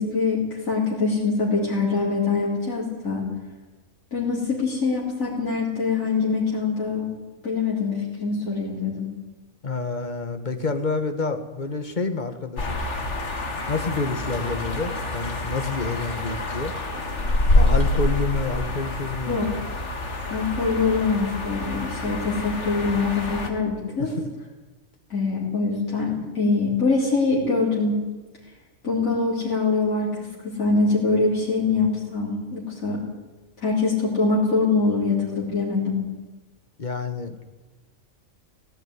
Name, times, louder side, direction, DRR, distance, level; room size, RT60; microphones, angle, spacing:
voice 1, 0.0-3.3 4.1-7.1 7.4-9.1 19.3-19.5 20.3-24.1 25.1-28.0 28.8-33.0 33.6-36.0, left 4 dB, 80° left, -5 dB, 4.4 m, -24 dB
voice 2, 9.6-12.8 13.7-16.7 17.5-19.5 24.0-24.3 36.8-37.4, left 3 dB, 35° left, 8 dB, 1.7 m, -28 dB
sound 1, 12.6-23.5, left 2 dB, 55° left, 2.4 m, -26 dB
16.5 x 16.5 x 9.7 m, 1.2 s
omnidirectional pair, 1.4 m